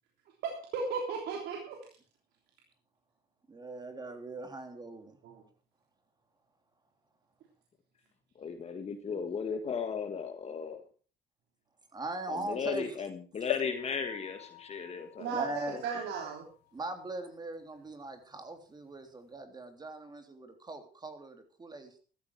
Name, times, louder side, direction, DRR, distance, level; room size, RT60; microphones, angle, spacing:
voice 1, 0.4-1.8 5.2-5.4 15.2-16.5, right 5 dB, 75° right, 1 dB, 3.3 m, -35 dB
voice 2, 3.5-5.2 11.9-13.0 13.4-13.5 15.3-15.8 16.7-22.0, right 2 dB, 25° right, 7 dB, 3.3 m, -41 dB
voice 3, 8.4-10.8 12.3-15.3 15.7-15.8, left 6 dB, 40° left, 7 dB, 1.6 m, -36 dB
sound 1, 13.5-17.2 17.8-17.9 18.1-18.2, left 14 dB, 85° left, 1.4 m, -42 dB
14.0 x 13.5 x 4.7 m, 0.40 s
cardioid pair, 110°, 17 cm